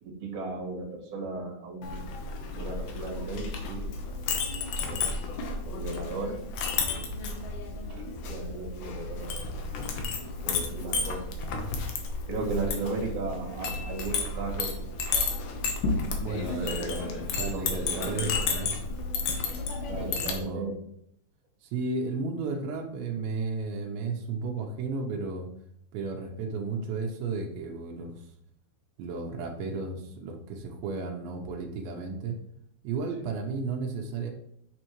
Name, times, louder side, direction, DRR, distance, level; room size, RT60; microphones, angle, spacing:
voice 1, 0.0-2.0 2.5-3.9 4.9-5.1 5.6-6.4 6.8-7.1 7.8-9.4 10.4-11.3 12.3-14.7 16.3-17.0 17.5-18.2 19.9-20.8 33.2-33.4, right 3 dB, 50° right, -2 dB, 3.1 m, -36 dB
Chink clink, 1.8-20.4, left 4 dB, 75° left, 1.9 m, -32 dB
voice 2, 16.2-18.7 19.9-20.7 21.6-25.5 25.9-28.1 29.0-32.4 32.8-34.3, right 4 dB, 85° right, 1 dB, 3.1 m, -33 dB
7.7 x 7.0 x 3.1 m, 0.69 s
omnidirectional pair, 5.1 m